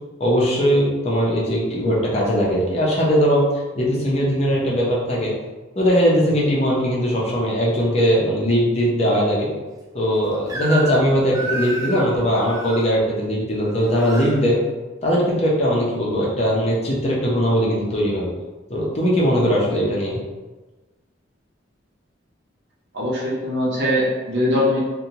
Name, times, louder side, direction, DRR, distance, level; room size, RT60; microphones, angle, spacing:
voice 1, 0.2-3.4 3.7-5.3 5.8-9.5 9.9-14.6 15.0-18.3 18.7-20.2, equal, 35° left, -5 dB, 0.6 m, -20 dB
Crying sobbing / Screech, 10.5-11.1 11.3-12.8 13.7-14.3, right 3 dB, 20° right, 0.3 m, -30 dB
voice 2, 22.9-24.8, left 1 dB, 65° right, -4 dB, 0.7 m, -21 dB
2.7 x 2.2 x 2.8 m, 1.2 s
head